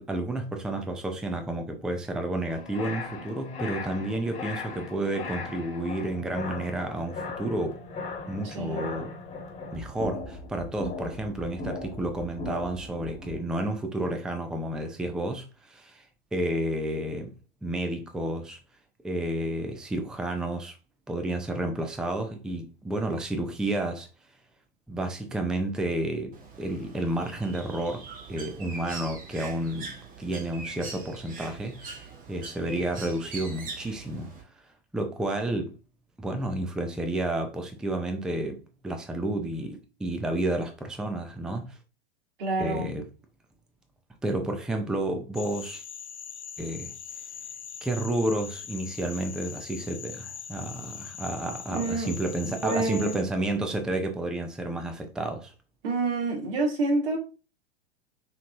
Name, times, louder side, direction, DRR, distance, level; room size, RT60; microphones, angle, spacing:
voice 1, 0.0-7.8 8.3-9.2 9.7-17.3 17.6-18.6 19.0-20.8 21.1-24.1 24.9-34.3 34.6-35.8 36.2-41.8 42.6-43.1 44.2-45.8 46.6-46.9 47.8-55.5, right 1 dB, ahead, 0.5 m, -31 dB
sound 1, 2.5-13.4, left 3 dB, 20° left, 1.4 m, -38 dB
voice 2, 8.4-8.9 42.4-42.9 51.7-52.1 52.6-53.1 55.8-57.2, right 2 dB, 60° right, 2.1 m, -28 dB
Bird, 26.3-34.4, right 4 dB, 25° right, 1.0 m, -42 dB
sound 2, 45.3-53.2, left 7 dB, 90° left, 0.6 m, -41 dB
5.7 x 3.1 x 2.5 m
figure-of-eight pair, 100°, 33 cm